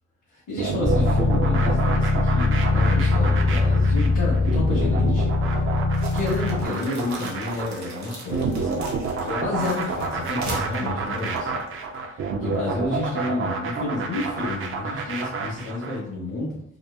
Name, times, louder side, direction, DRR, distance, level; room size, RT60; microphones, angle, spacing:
voice 1, 0.3-5.6 6.1-11.6 12.1-16.6, left 2 dB, 75° left, -7 dB, 1.1 m, -30 dB
sound 1, 0.6-16.0, right 4 dB, 45° right, 0.5 m, -29 dB
sound 2, 0.8-6.7, left 3 dB, 15° left, 0.4 m, -21 dB
sound 3, 5.9-12.0, right 2 dB, 65° right, 0.9 m, -40 dB
3.0 x 2.2 x 2.3 m, 0.75 s
cardioid pair, 90°, 30 cm